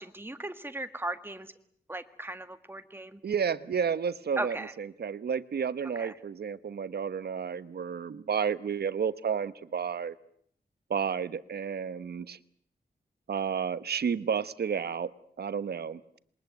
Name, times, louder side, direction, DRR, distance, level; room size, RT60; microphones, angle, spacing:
voice 1, 0.0-1.5 1.9-3.2 4.4-4.7 6.0-6.1, right 1 dB, 15° right, 9 dB, 1.8 m, -37 dB
voice 2, 3.2-10.2 10.9-12.4 13.3-15.1 15.4-16.0, right 7 dB, 80° right, 15 dB, 1.2 m, -31 dB
27.0 x 22.5 x 9.3 m, 0.66 s
wide cardioid pair, 125°, 16 cm